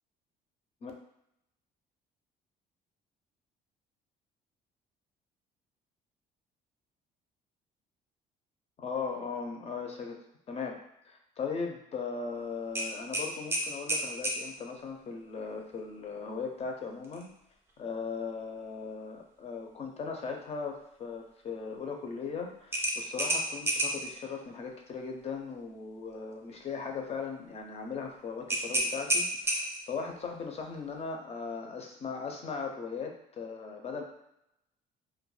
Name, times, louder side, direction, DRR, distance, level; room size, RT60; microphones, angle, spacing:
voice 1, 8.8-10.2 10.5-10.8 11.1-17.3 17.8-34.0, left 5 dB, 40° left, 2 dB, 0.5 m, -38 dB
sound 1, 12.7-14.4 17.0-17.3 17.7-17.8 22.7-24.1 28.5-29.9, right 1 dB, 15° right, 0.5 m, -30 dB
2.2 x 2.1 x 3.1 m, 0.80 s
cardioid pair, 110°, 17 cm